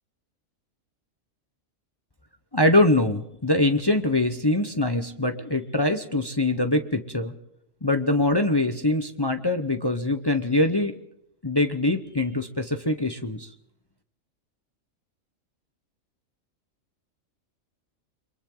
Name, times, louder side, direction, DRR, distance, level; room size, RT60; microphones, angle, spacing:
voice 1, 2.5-7.3 7.8-10.9 11.4-13.5, left 2 dB, 20° left, 7 dB, 0.9 m, -23 dB
29.0 x 23.5 x 3.9 m, 0.79 s
omnidirectional pair, 1.4 m